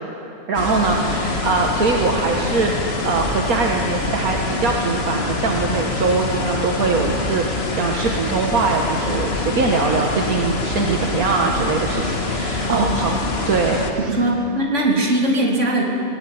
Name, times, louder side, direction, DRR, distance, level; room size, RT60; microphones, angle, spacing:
sound 1, 0.5-13.9, left 2 dB, 45° left, 2.0 m, -25 dB
voice 1, 0.5-13.2 13.5-13.8, right 4 dB, 75° right, 1 dB, 1.9 m, -22 dB
voice 2, 14.1-15.8, right 1 dB, 55° right, -1 dB, 3.1 m, -20 dB
18.5 x 18.0 x 9.5 m, 2.8 s
omnidirectional pair, 1.5 m